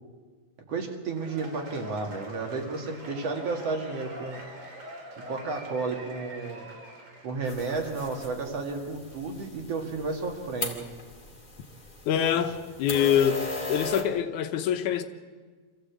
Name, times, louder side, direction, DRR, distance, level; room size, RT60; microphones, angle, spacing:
voice 1, 0.7-4.4 5.3-6.6 7.2-10.9, right 3 dB, 60° right, 3.0 m, -32 dB
Cheering / Applause / Crowd, 1.1-7.9, equal, 85° right, 5.5 m, -44 dB
sound 1, 7.5-14.0, left 2 dB, 15° left, 2.0 m, -38 dB
voice 2, 12.1-13.4 13.7-15.0, left 9 dB, 85° left, 2.5 m, -25 dB
25.5 x 15.0 x 8.3 m
omnidirectional pair, 3.4 m